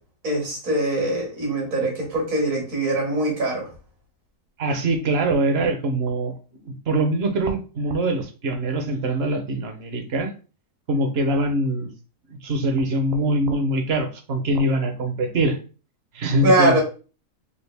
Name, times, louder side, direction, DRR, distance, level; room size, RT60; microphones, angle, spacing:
voice 1, 0.2-3.7 16.4-16.8, right 2 dB, 75° right, 0 dB, 1.9 m, -22 dB
voice 2, 4.6-6.3 6.6-10.3 10.9-11.9 12.3-15.6 16.1-16.8, right 1 dB, 55° right, 5 dB, 0.9 m, -23 dB
4.2 x 2.5 x 3.3 m, 0.36 s
omnidirectional pair, 1.4 m